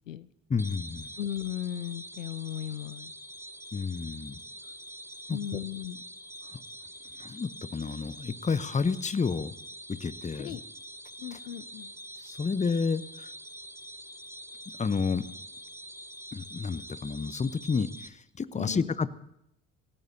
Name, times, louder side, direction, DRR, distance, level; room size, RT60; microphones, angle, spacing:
voice 1, 0.5-1.1 3.7-4.4 5.3-5.6 6.4-6.6 7.2-9.5 9.9-10.6 11.3-11.4 12.2-13.3 14.8-15.2 16.3-19.1, left 5 dB, 20° left, 15 dB, 0.8 m, -30 dB
sound 1, 0.6-18.1, equal, 5° right, 1.2 m, -45 dB
voice 2, 1.2-3.1 5.3-6.0 10.4-10.6 11.2-11.9 18.6-18.9, left 11 dB, 85° left, 17 dB, 0.6 m, -36 dB
26.5 x 16.0 x 2.7 m, 0.78 s
figure-of-eight pair, 50°, 38 cm